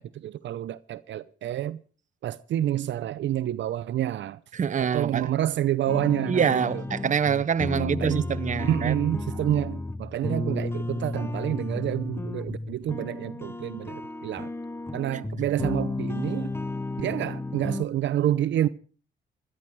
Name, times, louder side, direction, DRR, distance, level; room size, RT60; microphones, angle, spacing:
voice 1, 0.0-1.8 2.2-4.4 4.8-6.8 7.7-8.3 8.6-14.5 14.9-16.5 17.0-18.7, right 12 dB, 70° right, 0.7 m, -28 dB
voice 2, 4.5-5.3 6.3-9.0, right 7 dB, 40° right, 0.9 m, -25 dB
sound 1, 5.9-17.8, left 2 dB, 10° left, 0.7 m, -33 dB
17.5 x 12.5 x 4.7 m
cardioid pair, 90°, 20 cm